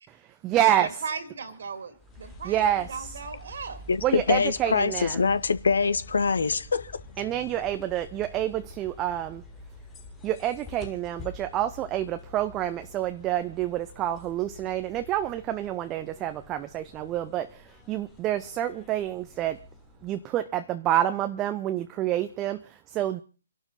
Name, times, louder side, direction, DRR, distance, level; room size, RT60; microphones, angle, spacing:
voice 1, 0.2-0.9 2.4-3.1 4.0-5.3 7.2-9.4 10.2-19.6 20.0-23.2, right 12 dB, 20° right, 0.7 m, -28 dB
voice 2, 0.8-3.8, right 5 dB, 50° right, 2.3 m, -37 dB
sound 1, 1.9-20.4, left 3 dB, 15° left, 3.0 m, -48 dB
voice 3, 3.9-6.9, left 5 dB, 60° left, 1.3 m, -24 dB
28.5 x 11.5 x 4.0 m
figure-of-eight pair, 130°, 0 cm